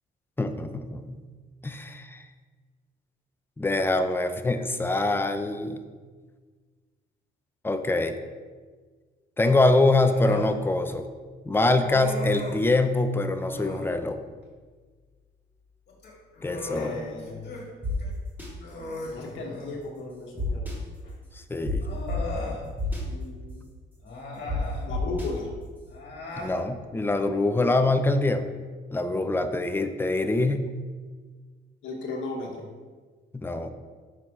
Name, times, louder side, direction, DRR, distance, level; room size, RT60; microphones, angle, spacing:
voice 1, 0.4-1.0 1.6-2.2 3.6-5.8 7.6-8.2 9.4-11.1 11.5-14.2 16.4-16.9 21.5-21.9 26.4-28.5 28.9-30.6 33.3-33.7, left 2 dB, 10° left, 8 dB, 0.5 m, -24 dB
Human voice, 10.0-10.6 11.8-12.7 13.4-13.9 15.9-17.7 18.0-18.1 18.6-19.8 21.0-21.1 21.8-22.6 24.0-24.8 25.9-26.6, left 3 dB, 55° left, 2.0 m, -37 dB
voice 2, 16.7-17.5 19.0-20.7 23.1-23.6 24.8-25.5 31.8-32.6, left 3 dB, 80° left, 1 dB, 1.2 m, -36 dB
sound 1, 17.8-17.9 18.4-18.5 20.4-20.7 21.6-21.7 22.1-22.2 22.8-23.0 24.5-24.6 24.9-25.3, left 1 dB, 10° right, 1.9 m, -29 dB
5.8 x 4.8 x 4.8 m, 1.5 s
cardioid pair, 90°, 20 cm